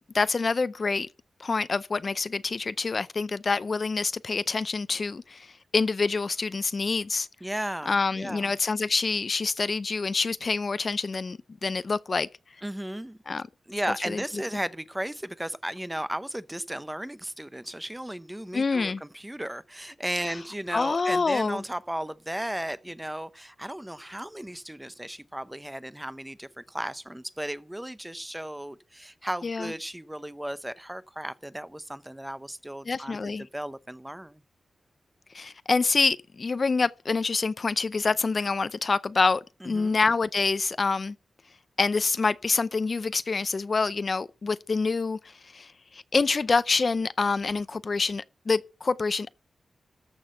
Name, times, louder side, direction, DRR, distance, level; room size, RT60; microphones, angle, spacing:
voice 1, 0.1-1.1 1.4-7.3 7.9-12.3 13.3-13.4 14.1-14.2 18.5-19.0 20.7-21.6 29.4-29.7 32.9-33.5 35.3-41.2 41.8-49.3, left 4 dB, 45° left, 0.5 m, -26 dB
voice 2, 7.4-8.5 12.6-13.2 13.7-34.4 39.6-40.0, right 1 dB, 5° right, 0.7 m, -35 dB
14.0 x 6.2 x 6.5 m
wide cardioid pair, 115°, 0 cm